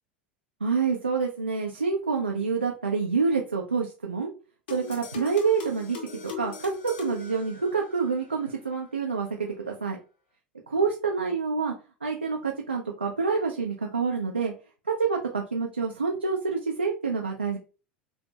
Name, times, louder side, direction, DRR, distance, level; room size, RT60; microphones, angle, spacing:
voice 1, 0.6-4.3 4.7-6.7 7.0-10.0 10.7-11.7 12.0-14.5 14.9-17.6, right 5 dB, 85° right, 0 dB, 0.4 m, -27 dB
sound 1, 4.7-8.1, left 7 dB, 65° left, 0.6 m, -39 dB
2.5 x 2.2 x 2.7 m, 0.34 s
figure-of-eight pair, 80°, 6 cm